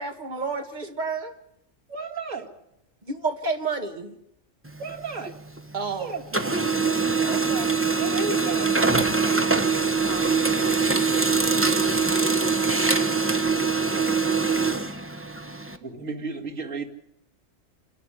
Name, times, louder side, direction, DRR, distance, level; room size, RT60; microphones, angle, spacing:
voice 1, 0.0-1.3 3.0-4.2 5.7-6.1 7.2-7.7, right 4 dB, 35° right, 5 dB, 1.9 m, -30 dB
voice 2, 1.9-2.5 4.8-5.3 5.9-6.7 8.0-8.8 13.3-14.2 15.8-16.8, right 3 dB, 85° right, -1 dB, 2.6 m, -34 dB
Printer, 4.6-5.9 6.2-15.8, right 4 dB, 10° right, 0.9 m, -23 dB
voice 3, 8.4-11.0, left 4 dB, 45° left, 2 dB, 2.6 m, -41 dB
27.5 x 11.5 x 10.0 m, 0.82 s
omnidirectional pair, 1.3 m